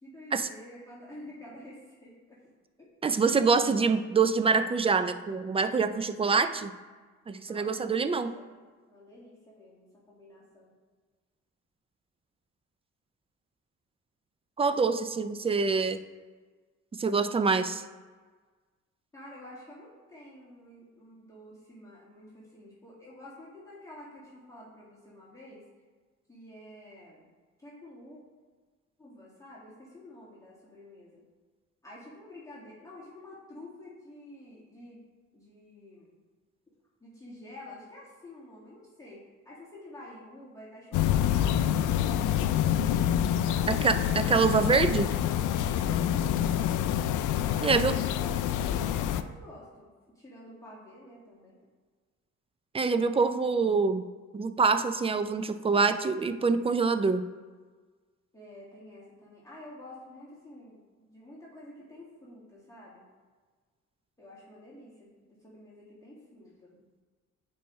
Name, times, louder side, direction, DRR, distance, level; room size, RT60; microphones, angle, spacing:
voice 1, 0.0-2.4 2.8-2.9 7.5-8.5 8.9-10.8 19.1-25.6 26.3-27.2 27.6-28.2 29.0-31.2 31.8-35.0 35.3-36.1 37.0-43.9 45.5-46.8 47.4-51.6 58.3-63.1 64.2-66.8, left 1 dB, 10° left, -7 dB, 2.0 m, -49 dB
voice 2, 3.0-6.7 7.3-8.3 14.6-16.0 17.0-17.8 43.7-45.1 47.6-47.9 52.7-54.0 54.3-57.3, right 4 dB, 20° right, 11 dB, 0.4 m, -25 dB
sound 1, 40.9-49.2, left 10 dB, 80° left, 0.4 m, -27 dB
9.0 x 4.7 x 3.1 m, 1.4 s
cardioid pair, 90°, 30 cm